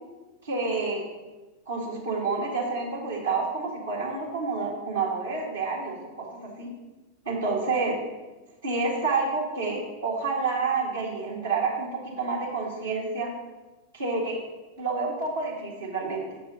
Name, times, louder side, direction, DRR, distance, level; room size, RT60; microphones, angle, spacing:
voice 1, 0.4-1.0 1.7-6.3 6.6-6.7 7.2-8.0 8.6-11.9 12.2-13.3 13.9-14.4 14.8-16.2, right 4 dB, 70° right, -4 dB, 1.7 m, -28 dB
6.7 x 4.5 x 6.5 m, 1.2 s
figure-of-eight pair, 90°, 0 cm